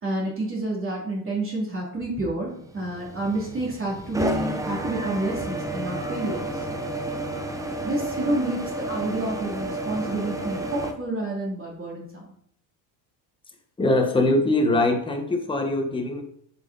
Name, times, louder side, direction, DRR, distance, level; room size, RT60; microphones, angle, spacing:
voice 1, 0.0-6.7 7.7-12.3, right 2 dB, 30° right, -4 dB, 2.7 m, -29 dB
sound 1, 2.6-10.9, right 2 dB, 10° right, 0.7 m, -31 dB
voice 2, 13.8-16.2, left 2 dB, 10° left, 3 dB, 1.1 m, -22 dB
7.5 x 5.9 x 4.0 m, 0.68 s
cardioid pair, 130°, 43 cm